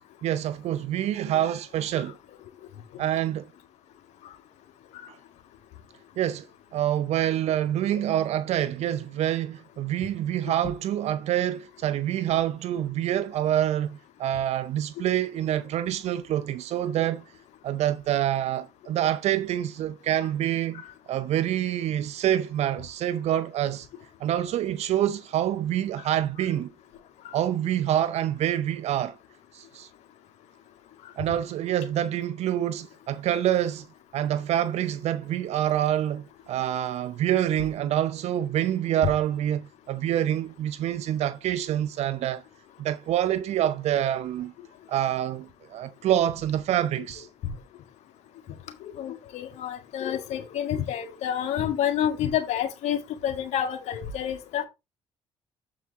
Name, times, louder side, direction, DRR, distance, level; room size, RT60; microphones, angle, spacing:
voice 1, 0.2-2.2 3.0-3.5 5.1-5.2 6.2-6.5 6.7-17.2 17.6-20.8 21.1-23.9 24.2-26.7 27.3-29.2 29.5-29.9 31.2-33.9 34.1-42.4 42.8-44.5 44.9-47.3, right 11 dB, 70° right, 0.6 m, -26 dB
voice 2, 49.0-54.6, left 10 dB, 80° left, 1.6 m, -28 dB
7.5 x 4.8 x 4.1 m
supercardioid pair, 60°, 11 cm